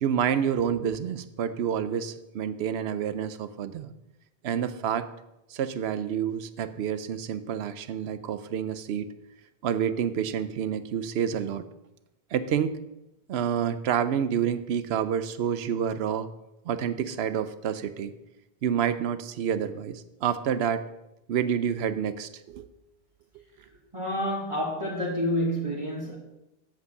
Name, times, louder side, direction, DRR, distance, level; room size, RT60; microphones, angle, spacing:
voice 1, 0.0-3.9 4.4-5.1 5.5-9.1 9.6-11.7 12.3-12.8 13.3-16.3 16.7-18.1 18.6-20.8 21.3-22.7, right 8 dB, 85° right, 12 dB, 0.9 m, -28 dB
voice 2, 23.9-26.2, equal, 30° right, -6 dB, 1.8 m, -28 dB
8.1 x 5.2 x 6.5 m, 0.92 s
omnidirectional pair, 1.1 m